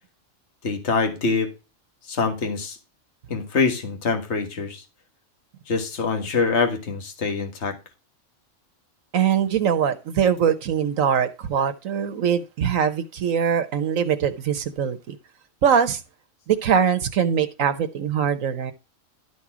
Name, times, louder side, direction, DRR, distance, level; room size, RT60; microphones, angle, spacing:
voice 1, 0.6-1.5 2.1-2.8 3.3-4.8 5.7-7.8, left 4 dB, 55° left, 1.9 m, -24 dB
voice 2, 9.1-15.2 15.6-16.0 16.5-18.7, right 8 dB, 85° right, 1.3 m, -22 dB
12.5 x 4.4 x 6.0 m
omnidirectional pair, 1.3 m